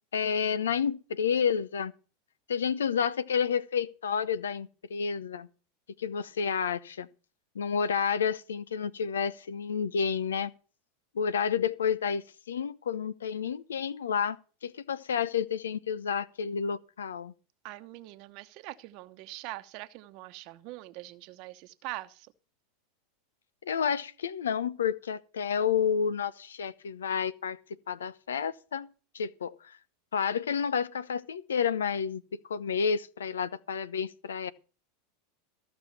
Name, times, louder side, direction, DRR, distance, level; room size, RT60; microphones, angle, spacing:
voice 1, 0.1-1.9 2.5-5.5 6.0-7.1 7.5-10.5 11.1-17.3 23.6-27.6 27.9-28.9 29.1-29.8 30.1-34.5, left 7 dB, 85° left, 0.7 m, -30 dB
voice 2, 17.6-22.3, right 18 dB, 55° right, 1.0 m, -43 dB
14.5 x 6.1 x 7.2 m
hypercardioid pair, 95°, 0 cm